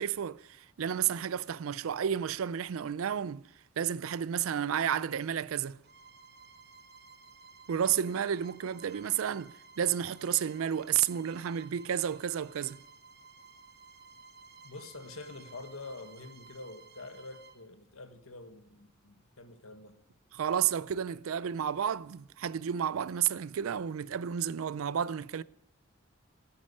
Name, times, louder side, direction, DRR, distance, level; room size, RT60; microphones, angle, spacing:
voice 1, 0.0-3.5 3.8-5.8 7.7-12.8 20.3-25.4, right 9 dB, 75° right, 0.4 m, -31 dB
Bowed string instrument, 5.8-17.6, right 4 dB, 50° right, 1.1 m, -55 dB
voice 2, 14.6-20.0, left 3 dB, 80° left, 1.5 m, -46 dB
10.5 x 8.7 x 10.0 m
head